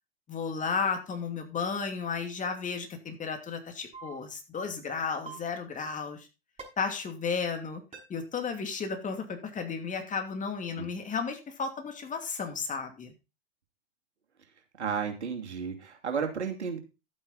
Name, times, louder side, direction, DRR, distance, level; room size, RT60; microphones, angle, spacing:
voice 1, 0.3-6.3 6.8-7.8 8.1-13.1, left 5 dB, 25° left, 5 dB, 2.7 m, -33 dB
sound 1, 3.9-4.1 5.3-5.4 6.6-6.7 7.9-8.0, right 5 dB, 15° right, 6.5 m, -42 dB
voice 2, 14.8-16.8, right 6 dB, 85° right, 4 dB, 2.7 m, -33 dB
12.0 x 8.8 x 4.1 m, 0.29 s
hypercardioid pair, 105°, 33 cm